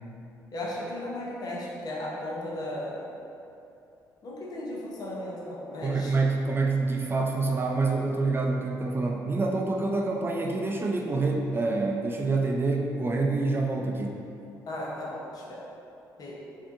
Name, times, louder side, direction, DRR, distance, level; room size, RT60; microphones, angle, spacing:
voice 1, 0.5-3.1 4.2-6.1 14.7-15.6 16.2-16.3, left 1 dB, 55° left, -4 dB, 0.7 m, -35 dB
voice 2, 5.8-14.3, right 3 dB, 30° right, 0 dB, 0.3 m, -27 dB
3.4 x 2.7 x 2.5 m, 2.7 s
supercardioid pair, 65°, 8 cm